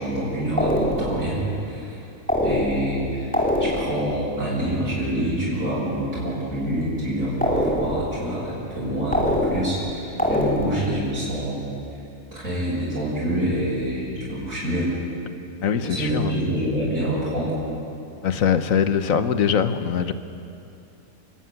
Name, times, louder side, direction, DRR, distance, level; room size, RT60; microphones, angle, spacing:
voice 1, 0.0-1.4 1.6-2.0 2.4-3.3 3.6-11.6 12.3-14.9 15.8-17.6, right 1 dB, 70° right, -9 dB, 7.2 m, -26 dB
sound 1, 0.6-1.3 2.3-3.0 3.3-4.1 7.4-8.1 9.1-9.9 10.2-10.9, left 1 dB, 5° left, 2.4 m, -23 dB
voice 2, 15.6-16.3 18.2-20.1, left 7 dB, 75° left, 10 dB, 1.4 m, -22 dB
26.0 x 13.5 x 9.5 m, 2.7 s
omnidirectional pair, 1.5 m